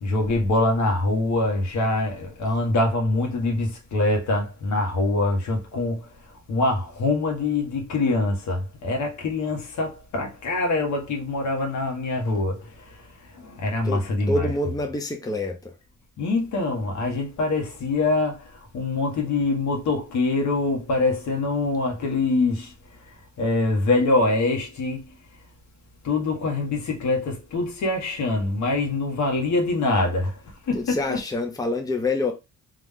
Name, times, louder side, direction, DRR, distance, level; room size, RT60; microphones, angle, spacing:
voice 1, 0.0-6.1 6.5-14.5 16.2-22.7 23.4-25.1 26.0-30.4 30.7-31.2, left 2 dB, 70° left, 1.7 m, -24 dB
voice 2, 13.8-15.7 30.7-32.3, left 2 dB, 10° left, 0.8 m, -27 dB
3.9 x 3.0 x 3.6 m
cardioid pair, 90°, 30 cm